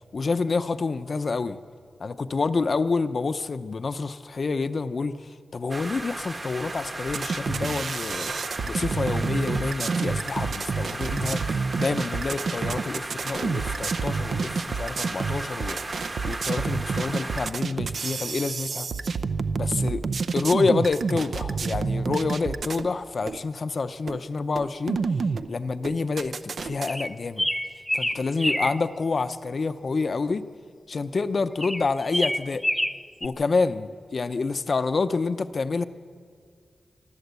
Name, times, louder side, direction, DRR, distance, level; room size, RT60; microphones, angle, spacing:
voice 1, 0.1-1.6 2.0-8.3 8.6-16.0 16.2-18.9 19.5-20.0 20.3-25.0 25.5-27.5 27.9-30.5 30.9-32.6 33.2-35.8, left 4 dB, 50° left, 11 dB, 0.7 m, -28 dB
sound 1, 5.7-17.5, right 2 dB, 30° right, 1.2 m, -35 dB
sound 2, 7.1-22.9 23.3-23.4 24.1-24.2 24.5-25.5 25.8-26.9, right 4 dB, 65° right, 0.6 m, -29 dB
sound 3, 26.9-28.8 31.6-33.3, left 1 dB, 5° left, 0.6 m, -27 dB
25.0 x 13.0 x 8.2 m, 2.1 s
wide cardioid pair, 120°, 0 cm